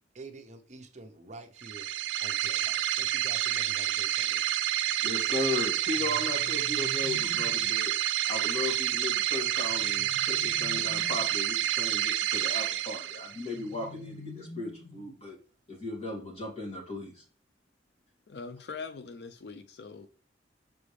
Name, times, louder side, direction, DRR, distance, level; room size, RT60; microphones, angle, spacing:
voice 1, 0.1-1.9 2.2-4.4, right 2 dB, 40° right, 0.8 m, -47 dB
sound 1, 1.6-13.5, right 13 dB, 90° right, 0.5 m, -29 dB
voice 2, 5.0-7.9 8.3-15.4 15.7-17.2, left 2 dB, 35° left, 2.3 m, -36 dB
sound 2, 5.9-7.8 9.6-11.5 13.3-15.2, left 2 dB, 10° left, 0.9 m, -47 dB
voice 3, 18.3-20.1, left 4 dB, 65° left, 0.4 m, -42 dB
6.7 x 4.9 x 3.3 m
head